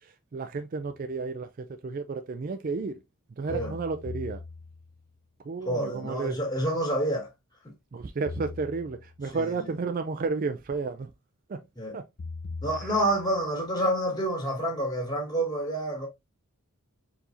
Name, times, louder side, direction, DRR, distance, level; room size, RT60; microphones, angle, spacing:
voice 1, 0.0-3.0 3.4-4.4 5.4-6.4 7.9-11.1 11.5-11.6 11.9-12.0 12.8-12.9, right 4 dB, 40° right, 0.4 m, -32 dB
sound 1, 3.5-5.1 8.3-9.3 12.2-13.5, left 3 dB, 45° left, 0.6 m, -40 dB
voice 2, 5.7-7.3 9.3-9.6 11.8-11.9 12.6-16.1, right 1 dB, 20° left, 1.9 m, -28 dB
4.7 x 4.1 x 2.6 m
head